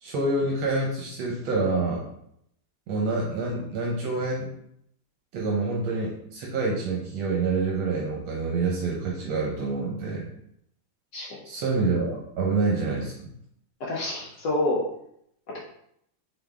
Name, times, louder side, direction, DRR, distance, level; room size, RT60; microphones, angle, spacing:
voice 1, 0.0-2.1 2.9-4.5 5.3-10.3 11.4-13.1, right 3 dB, 80° right, -1 dB, 1.6 m, -27 dB
voice 2, 13.8-14.8, left 2 dB, 65° left, -2 dB, 1.1 m, -27 dB
3.9 x 3.5 x 3.5 m, 0.73 s
omnidirectional pair, 2.3 m